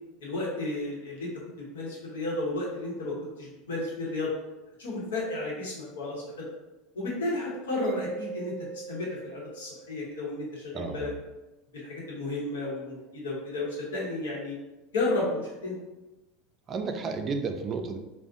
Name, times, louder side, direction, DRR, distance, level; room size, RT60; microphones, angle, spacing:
voice 1, 0.2-1.3 1.6-4.3 4.8-6.4 6.9-11.1 11.7-14.6 14.9-15.8, left 2 dB, 85° left, -5 dB, 0.9 m, -33 dB
Mallet percussion, 7.8-10.4, right 5 dB, 45° left, 0.7 m, -41 dB
voice 2, 10.7-11.1 16.7-18.0, right 4 dB, 35° right, 6 dB, 0.3 m, -32 dB
2.5 x 2.0 x 2.6 m, 1.0 s
hypercardioid pair, 95°, 0 cm